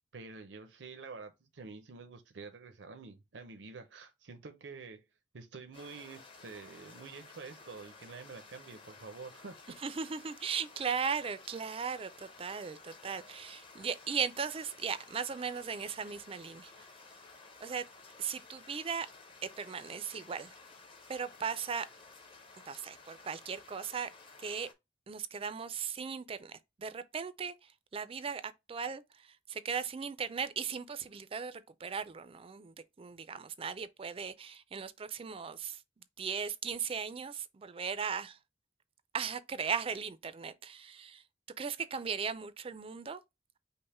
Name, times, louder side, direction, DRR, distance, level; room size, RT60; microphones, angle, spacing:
voice 1, 0.1-5.1 5.3-9.6, right 4 dB, 85° right, 0.6 m, -48 dB
sound 1, 5.7-24.7, left 3 dB, 30° left, 0.8 m, -55 dB
voice 2, 9.8-16.9 17.6-17.9 18.2-19.1 19.6-20.6 21.1-21.9 22.7-24.1 24.4-24.7 25.1-35.8 36.2-38.4 39.1-41.2 41.6-43.2, right 6 dB, 30° right, 0.4 m, -37 dB
5.4 x 2.1 x 4.2 m
head